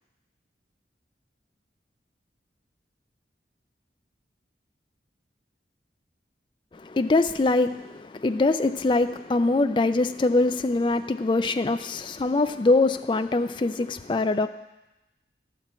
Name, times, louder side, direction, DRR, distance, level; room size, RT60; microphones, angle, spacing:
voice 1, 6.7-14.5, left 2 dB, 30° left, 10 dB, 0.3 m, -23 dB
11.0 x 4.5 x 7.4 m, 1.0 s
head